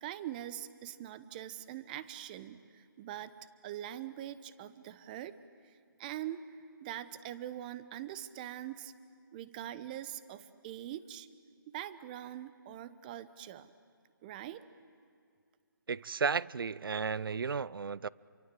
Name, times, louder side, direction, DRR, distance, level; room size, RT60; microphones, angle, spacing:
voice 1, 0.0-3.3 3.6-5.4 5.6-8.9 9.3-11.3 11.7-13.7 14.2-14.7, right 12 dB, 25° right, 0.8 m, -43 dB
voice 2, 15.9-18.1, right 5 dB, 75° right, 0.6 m, -33 dB
27.5 x 24.0 x 7.6 m
hypercardioid pair, 155°, 12 cm